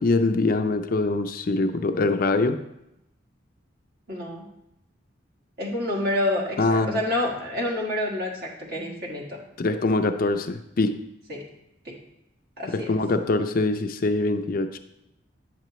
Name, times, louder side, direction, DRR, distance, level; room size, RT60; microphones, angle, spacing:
voice 1, 0.0-2.6 6.6-7.0 9.6-11.0 12.7-14.8, left 3 dB, 45° left, 8 dB, 0.4 m, -23 dB
voice 2, 4.1-4.5 5.6-9.4 11.3-11.5 11.9-12.0 12.6-12.9, left 1 dB, 50° right, -2 dB, 1.7 m, -28 dB
9.5 x 6.7 x 3.0 m, 0.83 s
head